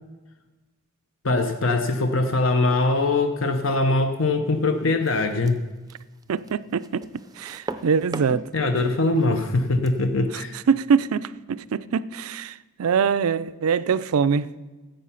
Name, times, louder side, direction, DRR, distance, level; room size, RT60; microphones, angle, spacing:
voice 1, 1.2-5.6 8.5-10.6, left 2 dB, 60° left, 0.7 m, -22 dB
sound 1, 4.8-10.1, right 2 dB, 15° right, 0.4 m, -39 dB
voice 2, 6.3-7.1 7.4-8.5 10.3-10.4 10.7-14.6, right 6 dB, 80° right, 0.4 m, -23 dB
14.5 x 7.9 x 5.7 m
head